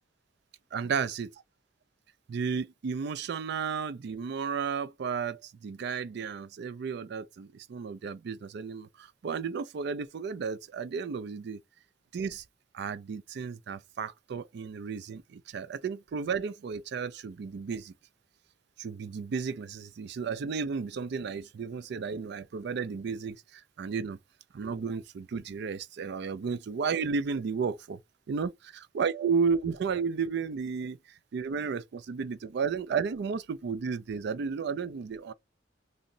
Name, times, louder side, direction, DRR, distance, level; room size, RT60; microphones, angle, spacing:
voice 1, 0.7-1.3 2.3-11.6 12.1-12.4 12.7-17.9 18.8-24.2 24.5-28.0 28.3-31.0 31.3-35.3, right 5 dB, 60° right, 0.4 m, -33 dB
2.7 x 2.0 x 3.7 m
head